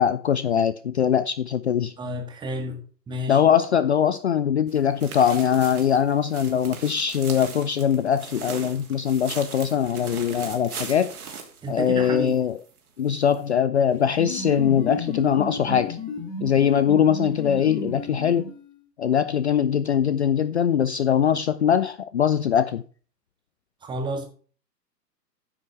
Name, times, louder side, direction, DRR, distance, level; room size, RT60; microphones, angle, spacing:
voice 1, 0.0-1.9 3.3-11.1 11.7-12.6 13.0-16.0 16.4-18.5 19.0-22.8, left 8 dB, 45° left, 0.5 m, -22 dB
voice 2, 2.0-2.8 3.1-3.4 11.6-12.4 23.8-24.3, right 1 dB, 10° right, 1.5 m, -30 dB
sound 1, 4.7-12.4 12.7-12.8 13.3-13.4, right 5 dB, 60° right, 3.0 m, -39 dB
sound 2, 13.9-18.8, left 3 dB, 15° left, 2.2 m, -32 dB
9.6 x 6.3 x 5.8 m
figure-of-eight pair, 125°, 50 cm